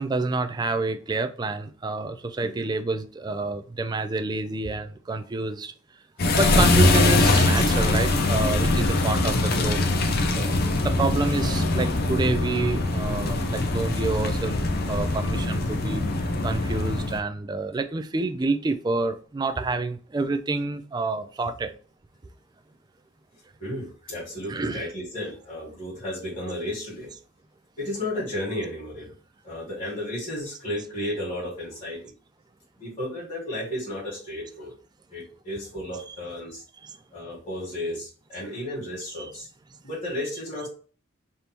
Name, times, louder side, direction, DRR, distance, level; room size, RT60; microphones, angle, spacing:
voice 1, 0.0-5.7 6.3-14.6 14.8-16.0 16.4-21.7 24.5-24.9 27.1-27.2 35.9-36.2 36.8-37.0 37.9-38.0 39.1-39.4 40.6-40.7, right 3 dB, 20° right, 0.3 m, -28 dB
sound 1, 6.2-17.2, left 2 dB, 55° left, 0.6 m, -22 dB
voice 2, 23.6-27.1 27.8-29.2 29.4-32.1 32.8-34.7 35.1-36.6 37.1-39.5 39.8-40.7, left 1 dB, 30° left, 1.9 m, -33 dB
3.5 x 2.7 x 4.4 m
head